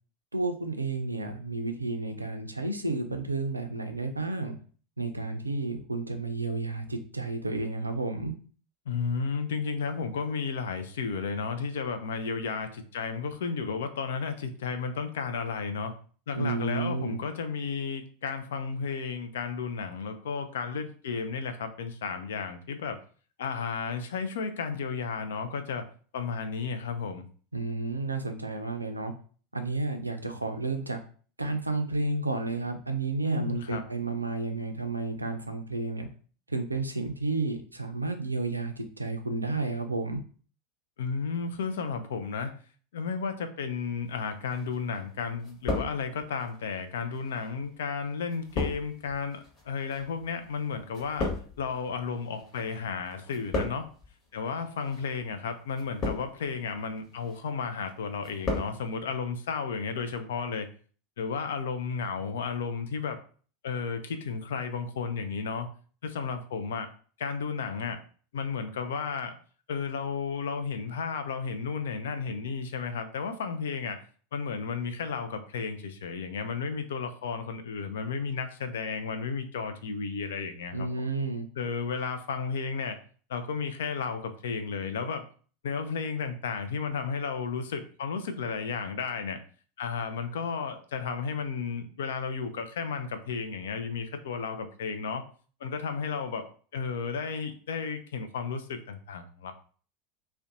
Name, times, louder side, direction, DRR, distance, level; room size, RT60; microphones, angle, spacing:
voice 1, 0.3-4.5 5.0-8.3 16.4-17.2 27.5-29.1 29.5-31.0 31.4-36.1 36.5-40.2 80.7-81.5, right 3 dB, 90° right, 6 dB, 0.3 m, -31 dB
voice 2, 8.9-15.9 16.3-23.0 23.4-25.8 26.1-27.3 33.2-33.8 41.0-42.5 42.9-51.3 51.6-53.9 54.3-60.7 61.2-63.2 63.6-65.7 66.0-66.9 67.2-68.0 68.3-69.4 69.7-74.0 74.3-80.9 81.6-83.0 83.3-85.2 85.6-89.4 89.8-95.2 95.6-99.5, left 5 dB, 70° left, 8 dB, 0.3 m, -33 dB
sound 1, 44.5-45.1 45.4-46.4 47.1-52.8 53.1-54.1 54.8-55.1 55.7-56.5 57.0-57.4 57.8-58.8 59.0-59.1, left 2 dB, 35° left, 1.1 m, -35 dB
2.4 x 2.1 x 2.6 m, 0.42 s
figure-of-eight pair, 80°, 0 cm